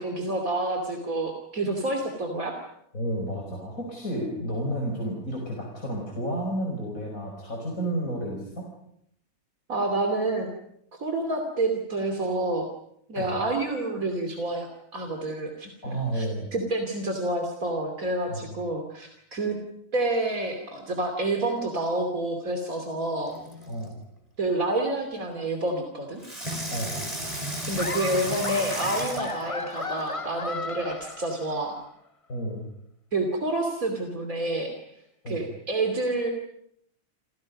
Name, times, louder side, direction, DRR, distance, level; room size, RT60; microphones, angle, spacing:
voice 1, 0.0-2.6 9.7-10.5 11.0-12.7 13.1-19.6 19.9-23.3 24.4-26.2 27.4-31.8 33.1-34.7 35.3-36.3, right 2 dB, 70° right, 3 dB, 3.3 m, -28 dB
voice 2, 2.9-8.7 13.2-13.4 15.8-16.5 18.3-18.5 23.7-24.0 26.7-27.0 32.3-32.7 35.2-35.4, right 1 dB, 65° left, 0 dB, 5.7 m, -31 dB
Water tap faucet / Sink (filling or washing), 23.2-23.9 26.2-30.2 30.8-30.9, right 1 dB, 25° right, 5.1 m, -35 dB
Laughter, 27.8-31.8, left 3 dB, 25° left, 1.4 m, -35 dB
29.0 x 27.5 x 5.4 m, 0.74 s
omnidirectional pair, 1.5 m